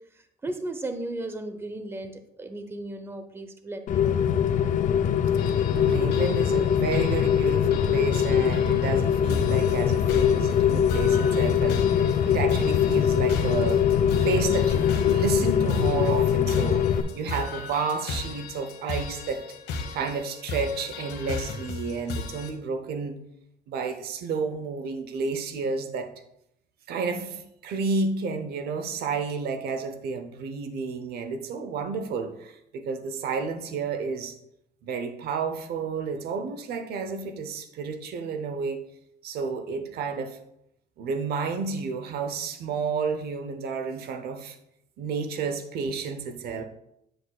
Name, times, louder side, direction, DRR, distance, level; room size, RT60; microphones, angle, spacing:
voice 1, 0.4-2.1 2.4-4.2, right 2 dB, 15° right, 8 dB, 0.7 m, -35 dB
Rain, 3.9-17.0, left 8 dB, 50° left, 0.5 m, -22 dB
sound 1, 5.4-22.5, left 4 dB, 80° left, 1.2 m, -37 dB
voice 2, 5.7-13.8 14.2-19.4 19.9-23.2 23.7-26.1 26.9-34.4 34.8-38.8 39.2-40.4 41.0-44.6 45.0-46.6, right 5 dB, 70° right, 8 dB, 0.8 m, -31 dB
8.0 x 7.8 x 2.3 m, 0.79 s
cardioid pair, 110°, 17 cm